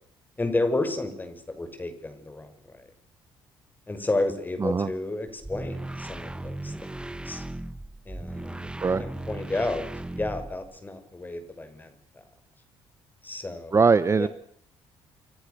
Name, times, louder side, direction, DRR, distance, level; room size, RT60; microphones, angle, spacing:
voice 1, 0.4-2.8 3.9-6.7 7.2-7.4 8.1-8.7 9.0-9.9 10.1-12.2 13.2-13.8 14.2-14.3, left 2 dB, 20° left, 9 dB, 6.4 m, -31 dB
voice 2, 4.6-4.9 8.8-9.0 13.7-14.3, right 5 dB, 30° right, 15 dB, 1.1 m, -21 dB
sound 1, 5.3-10.8, right 1 dB, 10° right, 1.6 m, -37 dB
28.0 x 27.0 x 7.0 m, 0.65 s
cardioid pair, 90°, 10 cm